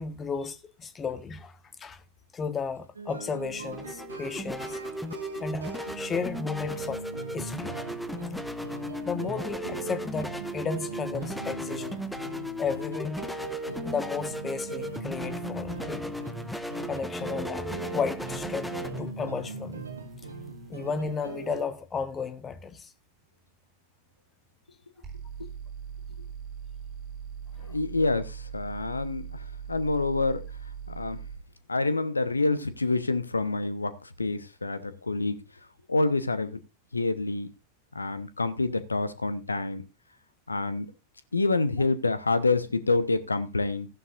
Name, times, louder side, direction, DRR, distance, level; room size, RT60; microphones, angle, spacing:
voice 1, 0.0-2.0 2.3-4.8 5.4-5.6 5.9-7.0 7.3-7.8 9.0-11.9 12.6-13.2 13.8-16.2 16.8-19.9 20.7-22.9 27.6-27.8, left 5 dB, 20° left, 1.4 m, -34 dB
sound 1, 3.0-21.7, right 4 dB, 75° right, 2.3 m, -40 dB
sound 2, 3.4-21.6, left 1 dB, 5° left, 1.1 m, -37 dB
sound 3, 25.0-31.4, right 7 dB, 25° right, 3.7 m, -40 dB
voice 2, 27.6-30.4 31.0-31.2 31.7-35.4 35.9-36.6 36.9-37.5 37.9-39.8 40.5-40.9 41.3-43.9, left 3 dB, 80° left, 1.0 m, -27 dB
15.5 x 11.0 x 2.6 m
figure-of-eight pair, 90°, 0 cm